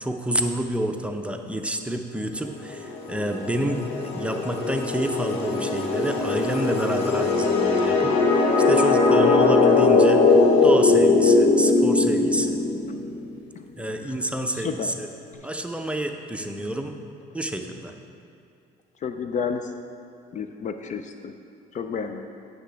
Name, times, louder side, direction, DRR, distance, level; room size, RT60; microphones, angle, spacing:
voice 1, 0.0-8.1 8.7-12.6 13.8-15.1 15.4-16.9 17.3-17.9, right 1 dB, 5° right, 4 dB, 0.6 m, -28 dB
sound 1, 2.7-13.3, left 3 dB, 80° left, 0.7 m, -20 dB
voice 2, 19.0-19.6 20.3-21.3 21.7-22.2, left 6 dB, 45° left, 8 dB, 0.5 m, -30 dB
9.7 x 6.6 x 3.4 m, 2.6 s
supercardioid pair, 85°, 17 cm